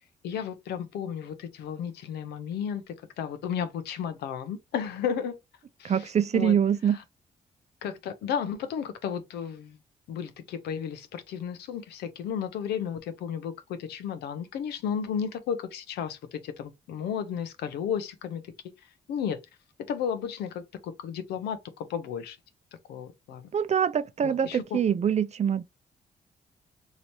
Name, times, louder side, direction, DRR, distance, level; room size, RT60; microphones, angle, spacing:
voice 1, 0.2-5.4 5.8-6.6 6.9-7.0 7.8-9.8 10.1-19.4 19.9-22.4 22.9-23.5 24.2-24.6, left 8 dB, 85° left, 0.5 m, -33 dB
voice 2, 5.8-7.0 23.5-25.6, right 8 dB, 45° right, 0.4 m, -24 dB
3.1 x 2.8 x 2.6 m
supercardioid pair, 60°, 16 cm